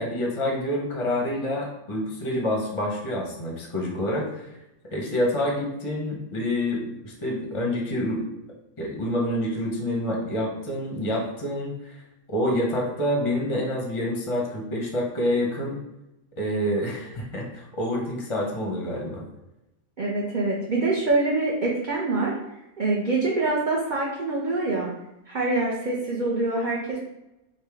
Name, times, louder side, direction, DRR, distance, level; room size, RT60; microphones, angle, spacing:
voice 1, 0.0-4.5 4.9-8.3 8.8-11.9 12.3-15.8 16.4-19.3, left 1 dB, 30° left, 0 dB, 0.6 m, -27 dB
voice 2, 20.0-22.3 22.8-24.9 25.3-27.0, right 2 dB, 50° right, -3 dB, 0.5 m, -25 dB
5.1 x 2.2 x 3.4 m, 0.92 s
omnidirectional pair, 1.5 m